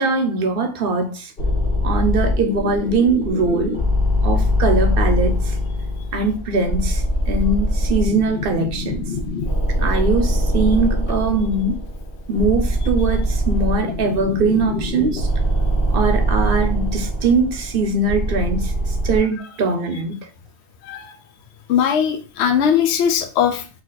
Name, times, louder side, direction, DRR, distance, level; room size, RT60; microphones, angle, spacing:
voice 1, 0.0-1.3 1.8-3.8 4.2-5.6 6.1-9.0 9.8-11.8 12.3-15.3 15.9-20.2, right 3 dB, 60° right, 0.9 m, -21 dB
sound 1, 1.4-19.2, equal, 55° left, 1.4 m, -22 dB
voice 2, 21.7-23.8, left 8 dB, 75° left, 0.9 m, -19 dB
4.3 x 2.9 x 4.0 m
omnidirectional pair, 1.1 m